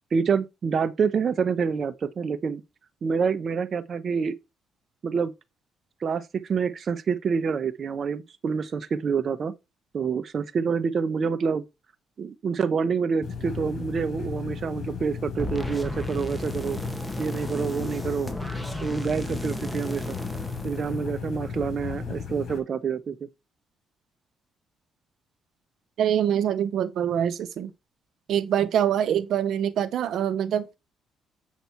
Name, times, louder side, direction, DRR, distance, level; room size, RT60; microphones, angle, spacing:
voice 1, 0.1-2.6 3.0-4.3 5.0-5.3 6.0-9.5 9.9-11.6 12.2-16.8 17.2-18.3 18.8-20.2 20.6-23.3, right 6 dB, 50° right, 0.8 m, -27 dB
sound 1, 13.2-22.6, left 6 dB, 55° left, 5.1 m, -35 dB
sound 2, 15.4-21.6, equal, ahead, 1.7 m, -35 dB
voice 2, 26.0-27.7 28.3-30.8, right 9 dB, 70° right, 0.9 m, -24 dB
8.2 x 6.0 x 4.5 m
cardioid pair, 90°, 0 cm